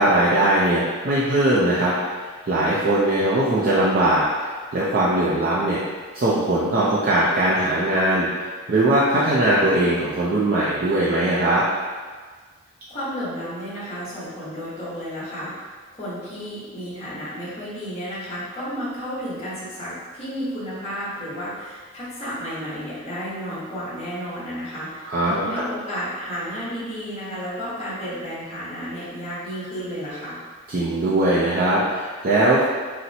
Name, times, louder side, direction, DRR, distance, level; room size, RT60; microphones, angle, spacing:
voice 1, 0.0-1.9 2.5-5.8 6.1-11.6 25.1-25.6 30.7-32.6, right 1 dB, 45° right, -8 dB, 0.4 m, -20 dB
voice 2, 12.9-15.5 15.9-30.4, equal, 30° left, -10 dB, 1.0 m, -32 dB
4.1 x 2.1 x 2.7 m, 1.5 s
head